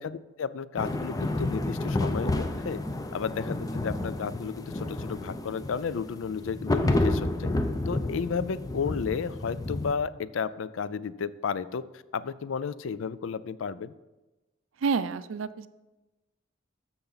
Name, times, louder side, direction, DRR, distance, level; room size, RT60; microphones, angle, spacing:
voice 1, 0.0-2.8 3.1-7.5 7.9-11.8 12.1-13.9, left 6 dB, 80° left, 16 dB, 0.4 m, -33 dB
sound 1, 0.8-9.9, left 2 dB, 20° left, 0.6 m, -30 dB
voice 2, 14.8-15.7, right 5 dB, 85° right, 14 dB, 0.4 m, -28 dB
13.5 x 5.8 x 4.0 m, 1.1 s
head